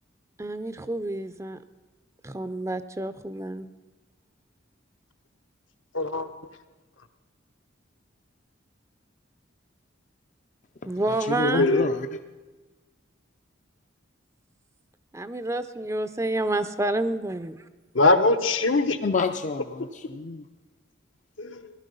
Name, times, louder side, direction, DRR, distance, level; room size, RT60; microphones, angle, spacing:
voice 1, 0.4-1.6 2.2-3.7 10.8-11.9 15.1-17.6, right 2 dB, 15° right, 11 dB, 0.5 m, -29 dB
voice 2, 5.9-6.3 11.4-11.9 17.9-19.0 21.4-21.7, left 3 dB, 75° left, 7 dB, 1.1 m, -22 dB
voice 3, 11.1-12.1 19.0-20.4, left 3 dB, 40° left, 6 dB, 0.5 m, -28 dB
17.0 x 12.0 x 5.4 m, 1.2 s
head